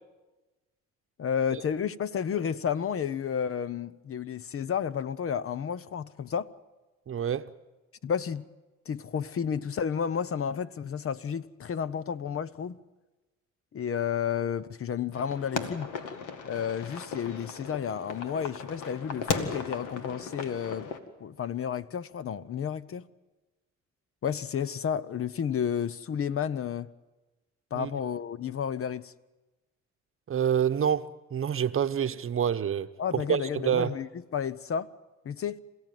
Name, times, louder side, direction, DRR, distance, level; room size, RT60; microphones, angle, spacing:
voice 1, 1.2-6.5 8.0-8.4 8.9-12.8 13.7-15.9 16.5-20.9 21.2-23.1 24.2-26.9 27.7-29.1 33.0-34.9 35.2-35.6, left 7 dB, 45° left, 0.8 m, -31 dB
voice 2, 7.1-7.5 27.7-27.9 30.3-34.0, right 8 dB, 45° right, 1.0 m, -27 dB
sound 1, 15.1-21.0, left 6 dB, 85° left, 2.0 m, -36 dB
27.5 x 16.0 x 9.3 m
cardioid pair, 90°, 30 cm